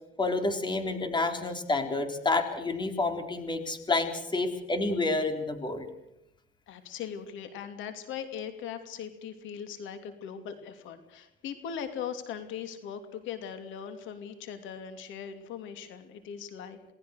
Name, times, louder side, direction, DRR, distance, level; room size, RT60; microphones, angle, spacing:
voice 1, 0.2-5.9, left 3 dB, 25° left, 6 dB, 4.1 m, -29 dB
voice 2, 6.7-16.9, left 8 dB, 85° left, 8 dB, 2.9 m, -40 dB
28.0 x 19.0 x 6.6 m, 0.85 s
cardioid pair, 120°, 19 cm